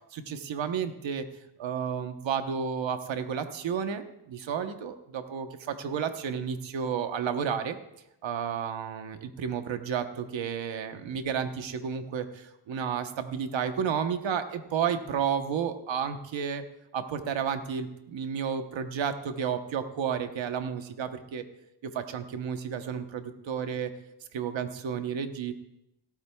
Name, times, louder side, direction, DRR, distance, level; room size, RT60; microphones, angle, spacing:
voice 1, 0.1-1.2 1.6-7.8 8.2-16.6 16.9-21.4 21.9-23.9 24.3-25.5, right 7 dB, 85° right, 7 dB, 1.1 m, -32 dB
17.5 x 13.0 x 2.3 m, 0.85 s
cardioid pair, 70°, 44 cm